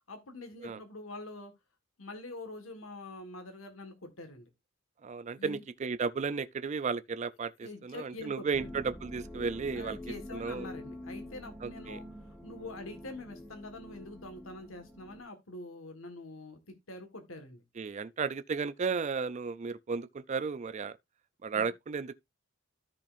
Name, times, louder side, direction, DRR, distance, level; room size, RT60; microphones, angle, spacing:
voice 1, 0.1-1.5 2.0-4.5 5.3-5.6 7.6-8.7 9.7-12.1 12.4-17.6 21.5-21.7, left 2 dB, 80° left, 1.6 m, -45 dB
voice 2, 5.0-10.0 10.3-10.7 11.6-12.0 17.8-21.0 21.4-22.1, right 5 dB, 35° right, 0.4 m, -34 dB
sound 1, 8.5-15.2, left 1 dB, 5° left, 1.3 m, -46 dB
13.5 x 5.2 x 2.5 m
head